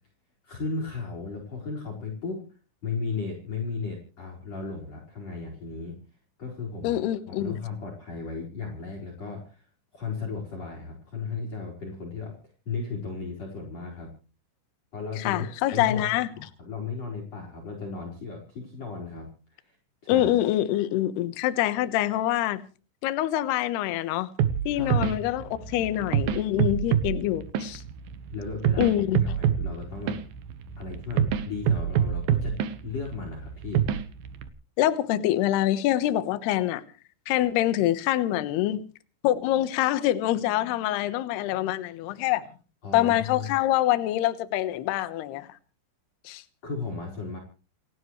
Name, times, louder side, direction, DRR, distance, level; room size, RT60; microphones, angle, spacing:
voice 1, 0.4-2.5 2.8-6.0 6.4-9.7 9.9-12.3 12.7-14.1 14.9-15.5 15.7-16.0 16.4-19.8 20.0-20.4 24.7-25.2 28.3-30.2 30.8-32.6 32.8-33.8 42.8-43.5 46.6-47.4, left 4 dB, 30° left, 5.2 m, -35 dB
voice 2, 6.8-7.6 15.2-16.3 20.1-22.6 23.0-24.3 24.7-27.8 28.8-29.2 34.8-36.8 37.3-38.8 39.2-42.4 42.9-45.5 46.3-46.4, left 13 dB, 75° left, 2.6 m, -25 dB
sound 1, 24.4-34.5, right 9 dB, 80° right, 2.0 m, -27 dB
29.5 x 12.5 x 3.2 m
omnidirectional pair, 6.0 m